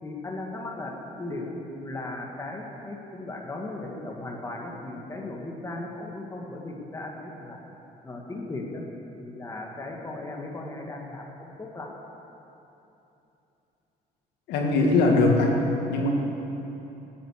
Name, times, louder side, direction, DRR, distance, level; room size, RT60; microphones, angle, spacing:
voice 1, 0.0-7.6 8.0-8.8 9.2-11.9, left 2 dB, 20° left, -1 dB, 1.8 m, -37 dB
voice 2, 14.5-16.1, left 2 dB, 85° left, 0 dB, 2.0 m, -21 dB
14.5 x 8.8 x 6.5 m, 2.9 s
cardioid pair, 110°, 17 cm